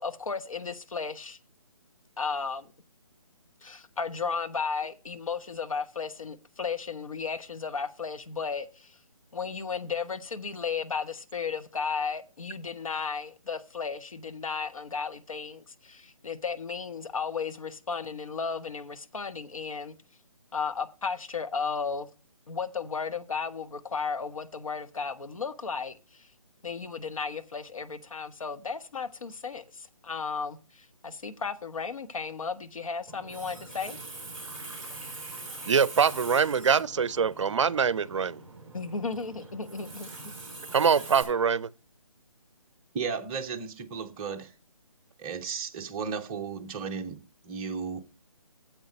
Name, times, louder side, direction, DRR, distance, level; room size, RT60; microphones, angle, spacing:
voice 1, 0.0-1.4 2.2-2.7 3.6-9.0 9.3-20.0 20.5-22.1 22.5-26.3 26.6-34.0 38.7-40.1, left 5 dB, 70° left, 1.1 m, -34 dB
Water tap faucet, 33.1-41.2, right 2 dB, ahead, 3.2 m, -43 dB
voice 2, 35.7-38.4 40.7-41.7, right 6 dB, 60° right, 0.5 m, -24 dB
voice 3, 42.9-44.5 45.2-48.0, right 5 dB, 15° right, 0.7 m, -34 dB
9.1 x 7.5 x 5.1 m
figure-of-eight pair, 150°, 18 cm